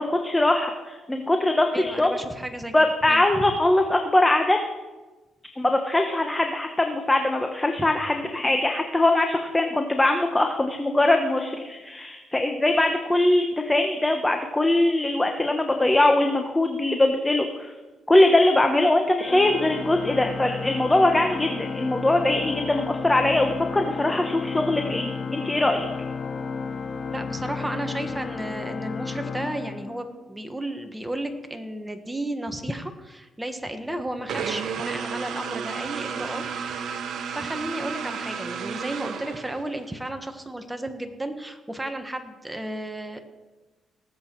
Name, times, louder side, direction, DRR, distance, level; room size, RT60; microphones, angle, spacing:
voice 1, 0.0-2.1 2.7-4.6 5.6-17.7 18.1-25.9, left 1 dB, 15° left, 4 dB, 1.1 m, -22 dB
voice 2, 1.7-2.7 3.1-3.4 7.8-7.9 27.1-36.4 37.2-43.2, right 1 dB, 10° right, 6 dB, 1.5 m, -33 dB
Organ, 19.2-30.4, left 5 dB, 55° left, 0.8 m, -33 dB
sound 1, 34.3-39.9, right 6 dB, 70° right, 1.1 m, -32 dB
19.0 x 8.0 x 4.6 m, 1.2 s
cardioid pair, 90°, 0 cm